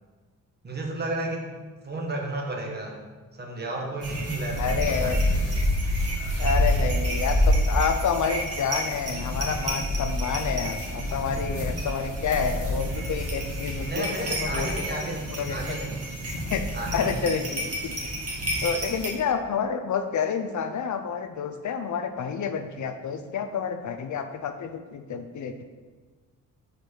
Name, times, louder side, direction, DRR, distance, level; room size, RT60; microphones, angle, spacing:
voice 1, 0.6-1.5 1.8-3.0 3.4-5.6 13.9-16.0 16.7-17.2, right 2 dB, 30° right, 0 dB, 1.3 m, -33 dB
sound 1, 4.0-19.1, equal, 45° right, 2.0 m, -28 dB
voice 2, 4.6-5.2 6.4-15.0 15.4-15.9 16.5-16.6 16.9-17.9 18.6-25.6, left 6 dB, 60° left, 7 dB, 0.6 m, -29 dB
5.1 x 4.5 x 6.2 m, 1.4 s
cardioid pair, 115°, 34 cm